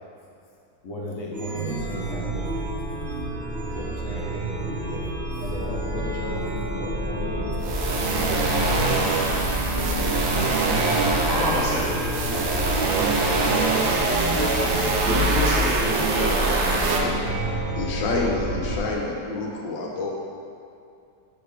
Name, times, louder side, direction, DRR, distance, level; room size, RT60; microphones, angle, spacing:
voice 1, 0.8-2.4 3.7-5.0 5.4-9.4 10.5-11.1 11.4-12.9, left 2 dB, 55° left, -3 dB, 1.1 m, -36 dB
Chime, 1.3-18.8, right 1 dB, 40° right, 1.0 m, -29 dB
sound 1, 7.6-17.0, right 2 dB, 85° right, 1.5 m, -24 dB
voice 2, 11.3-11.8 13.0-13.5 15.1-17.2, right 1 dB, 65° right, -6 dB, 2.0 m, -28 dB
voice 3, 17.7-20.1, left 3 dB, 90° left, -1 dB, 1.6 m, -28 dB
6.4 x 6.1 x 3.4 m, 2.6 s
omnidirectional pair, 2.0 m